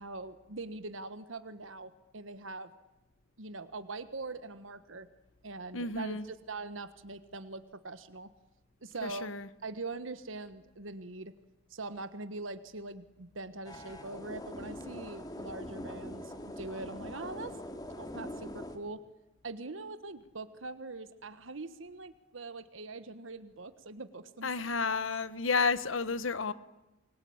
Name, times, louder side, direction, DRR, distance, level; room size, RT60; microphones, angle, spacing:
voice 1, 0.0-2.7 3.4-5.1 5.4-8.3 8.8-9.3 9.6-11.3 11.7-17.6 18.0-19.0 19.4-24.5, right 3 dB, 80° right, 1.4 m, -42 dB
voice 2, 5.7-6.3 9.0-9.5 24.4-26.5, left 4 dB, 80° left, 1.4 m, -31 dB
sound 1, 13.6-18.8, left 1 dB, 20° left, 2.9 m, -43 dB
28.5 x 21.5 x 8.8 m
head